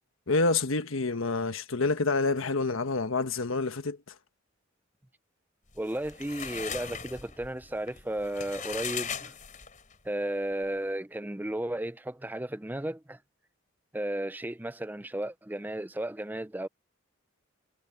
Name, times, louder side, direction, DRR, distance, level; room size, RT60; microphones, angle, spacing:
voice 1, 0.3-4.0, left 3 dB, 90° left, 1.3 m, -27 dB
sound 1, 5.8-10.0, left 7 dB, 40° left, 3.9 m, -38 dB
voice 2, 5.8-9.3 10.0-13.2 13.9-16.7, right 1 dB, 10° right, 0.5 m, -34 dB
head